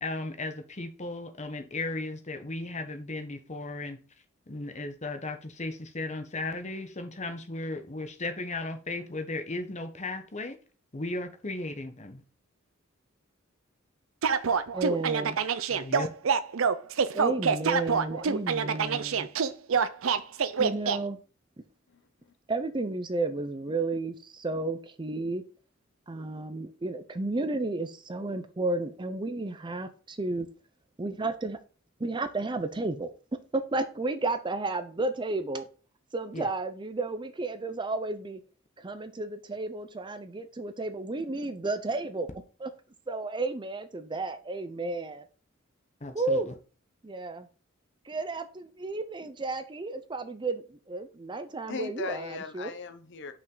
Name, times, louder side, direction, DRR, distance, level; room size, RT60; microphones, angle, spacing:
voice 1, 0.0-4.0 4.5-10.6 10.9-12.2 15.7-16.1 36.3-36.5 46.0-46.5, left 2 dB, 35° left, 1.0 m, -36 dB
sound 1, 14.2-21.0, right 6 dB, 70° right, 0.5 m, -26 dB
voice 2, 14.7-15.4 17.1-19.3 20.6-21.2 22.5-25.4 26.1-30.5 31.0-31.6 32.0-33.1 33.5-35.7 36.1-38.4 38.8-42.3 42.6-42.7 43.1-45.2 46.1-46.5 47.0-47.5 48.1-52.7, right 2 dB, 20° right, 0.5 m, -32 dB
voice 3, 21.9-22.3 51.7-53.3, left 4 dB, 60° left, 0.8 m, -39 dB
5.9 x 5.6 x 3.8 m
head